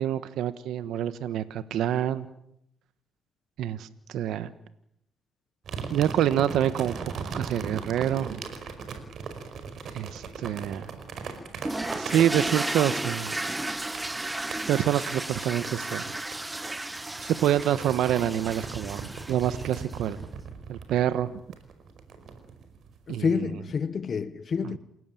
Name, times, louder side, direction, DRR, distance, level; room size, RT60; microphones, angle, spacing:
voice 1, 0.0-2.3 3.6-4.5 5.9-8.4 9.9-10.8 11.9-13.4 14.7-16.1 17.2-20.2 20.7-21.3 23.1-23.2, right 11 dB, 80° right, 1.2 m, -27 dB
sound 1, 5.6-12.8 13.2-14.6 15.2-16.0 16.3-23.0, right 5 dB, 65° right, 5.1 m, -39 dB
sound 2, 11.6-20.1, right 2 dB, 15° right, 1.4 m, -34 dB
voice 2, 23.1-24.8, left 6 dB, 45° left, 1.1 m, -28 dB
28.5 x 17.0 x 9.3 m
cardioid pair, 90°, 0 cm